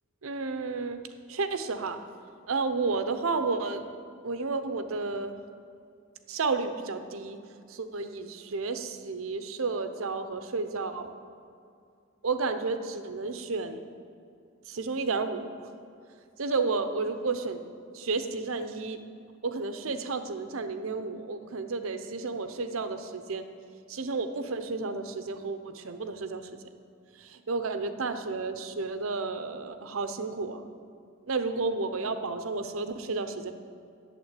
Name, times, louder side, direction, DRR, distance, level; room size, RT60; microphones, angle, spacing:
voice 1, 0.2-1.0 1.3-2.0 2.5-3.8 4.2-5.4 6.3-7.4 7.7-11.1 12.2-13.8 14.7-15.7 16.4-17.6 17.9-19.0 19.4-23.5 23.9-26.5 27.2-30.7 31.3-33.5, right 3 dB, 90° right, 9 dB, 0.7 m, -32 dB
8.4 x 7.4 x 8.8 m, 2.4 s
head